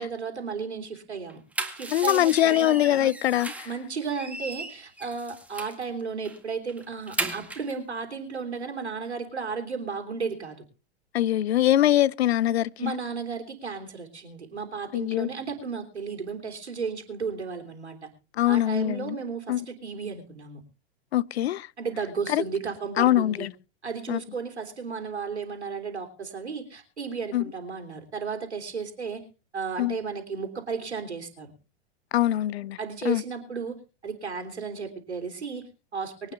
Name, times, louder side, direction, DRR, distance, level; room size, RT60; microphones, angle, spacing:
voice 1, 0.0-1.4 1.7-3.1 3.6-10.6 12.8-18.0 18.5-20.6 21.8-23.5 23.8-29.2 29.5-31.5 32.8-33.8 34.0-36.3, right 5 dB, 90° right, 3.2 m, -34 dB
sound 1, 1.3-3.8 4.1-5.8 6.2-6.4 6.7-7.7, right 2 dB, 5° right, 1.8 m, -35 dB
voice 2, 1.9-3.7 11.1-12.9 14.9-15.3 18.4-19.2 19.5-19.7 21.1-21.7 22.3-22.4 23.0-23.5 24.1-24.2 27.3-27.5 29.8-30.0 32.1-32.8 33.0-33.2, left 13 dB, 75° left, 0.6 m, -23 dB
24.0 x 9.0 x 3.3 m
hypercardioid pair, 105°, 33 cm